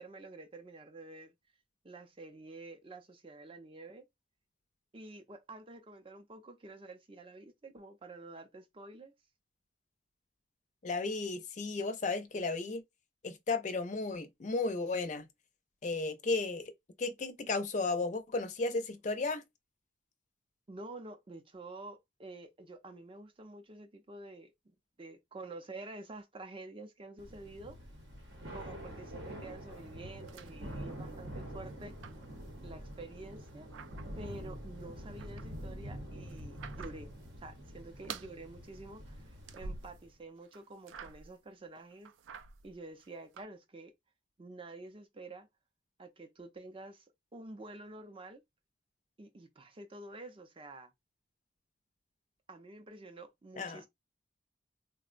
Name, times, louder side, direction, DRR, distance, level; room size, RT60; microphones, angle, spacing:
voice 1, 0.0-1.3 1.8-4.1 4.9-9.1 20.7-27.8 28.5-32.0 32.6-33.7 34.1-37.1 37.4-42.1 42.6-43.9 44.4-45.5 46.0-47.1 47.3-48.4 49.2-50.9 52.5-53.9, right 2 dB, 30° right, 0.5 m, -49 dB
voice 2, 10.8-12.8 13.2-15.3 15.8-16.7 17.0-19.4 53.6-53.8, left 3 dB, 40° left, 0.4 m, -34 dB
Thunder / Rain, 27.2-40.1, equal, 70° right, 0.8 m, -46 dB
sound 1, 29.8-31.3 31.6-33.0 33.4-34.4 34.8-37.3 37.6-38.4 38.7-40.1 40.4-41.4 41.8-43.5, right 5 dB, 85° right, 0.4 m, -49 dB
3.6 x 2.0 x 2.4 m
head